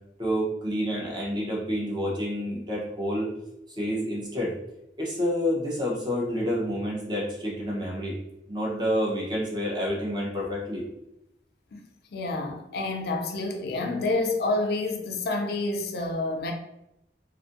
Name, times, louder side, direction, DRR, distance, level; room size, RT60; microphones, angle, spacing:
voice 1, 0.2-3.3 3.7-4.5 5.0-8.2 8.5-10.8, equal, 25° right, -4 dB, 0.7 m, -28 dB
voice 2, 12.1-16.5, left 2 dB, 60° left, 3 dB, 0.4 m, -28 dB
2.5 x 2.5 x 2.5 m, 0.86 s
head